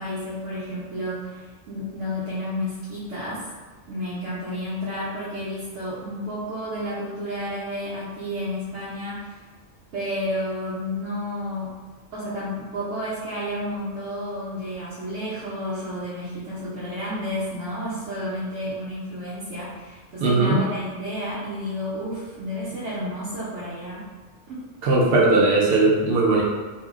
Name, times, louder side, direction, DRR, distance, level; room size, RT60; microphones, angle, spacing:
voice 1, 0.0-3.5 3.9-9.4 9.9-11.8 12.1-24.1 24.5-24.7, left 1 dB, 80° right, -10 dB, 1.0 m, -31 dB
voice 2, 20.2-20.6 24.8-26.4, right 3 dB, 60° right, -3 dB, 0.7 m, -18 dB
2.7 x 2.0 x 3.5 m, 1.4 s
omnidirectional pair, 1.3 m